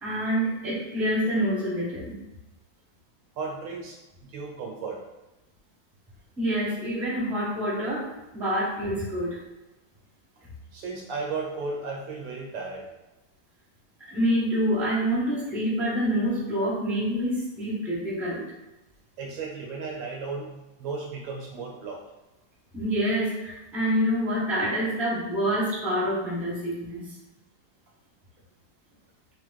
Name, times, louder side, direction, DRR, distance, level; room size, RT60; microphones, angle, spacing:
voice 1, 0.0-2.1 6.4-9.4 14.1-18.5 22.7-27.1, equal, ahead, -6 dB, 0.8 m, -27 dB
voice 2, 3.4-5.0 10.7-12.8 19.2-20.5 20.8-22.0, right 4 dB, 70° right, 0 dB, 1.4 m, -34 dB
3.6 x 3.1 x 4.0 m, 1.0 s
omnidirectional pair, 2.2 m